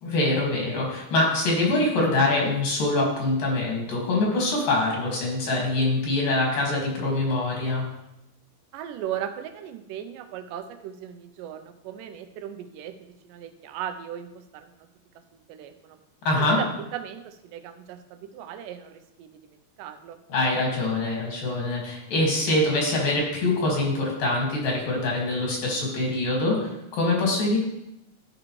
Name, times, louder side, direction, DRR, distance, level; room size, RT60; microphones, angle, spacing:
voice 1, 0.0-7.8 16.3-16.6 20.3-27.6, left 2 dB, 85° left, -1 dB, 3.6 m, -24 dB
voice 2, 8.7-14.9 15.5-16.0 16.4-20.2, right 10 dB, 85° right, 8 dB, 2.2 m, -37 dB
12.5 x 5.1 x 3.1 m, 0.87 s
omnidirectional pair, 3.8 m